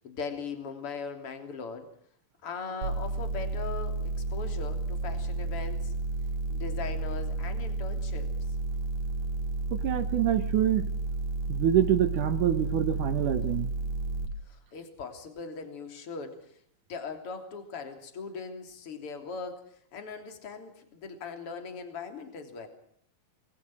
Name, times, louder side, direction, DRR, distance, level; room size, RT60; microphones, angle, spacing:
voice 1, 0.0-1.9 2.4-5.9 6.5-8.3 14.4-16.6 16.9-22.7, left 5 dB, 40° left, 6 dB, 3.9 m, -40 dB
sound 1, 2.8-14.3, right 2 dB, 50° right, 3.3 m, -32 dB
voice 2, 9.7-10.9 11.5-13.7, right 11 dB, 65° right, 9 dB, 2.5 m, -26 dB
27.5 x 21.0 x 6.2 m, 0.65 s
omnidirectional pair, 4.2 m